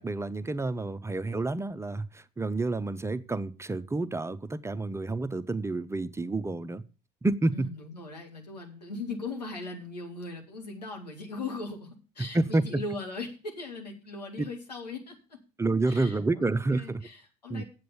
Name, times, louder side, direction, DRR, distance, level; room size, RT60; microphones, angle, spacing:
voice 1, 0.0-6.8 7.2-7.7 12.3-12.6 14.4-14.5 15.6-17.0 17.5-17.6, right 2 dB, 15° right, 13 dB, 0.7 m, -29 dB
voice 2, 7.5-15.2 15.9-16.4 16.7-17.7, left 3 dB, 90° left, 1 dB, 2.2 m, -39 dB
8.1 x 7.7 x 6.8 m, 0.34 s
hypercardioid pair, 65°, 20 cm